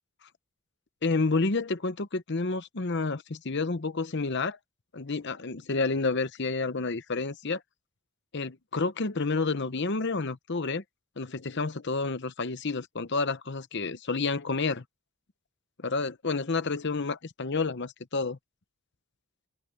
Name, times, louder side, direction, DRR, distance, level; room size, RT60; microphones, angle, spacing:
voice 1, 1.0-4.6 4.9-7.6 8.3-10.8 11.2-14.8 15.8-18.4, left 3 dB, 50° left, 0.9 m, -29 dB
head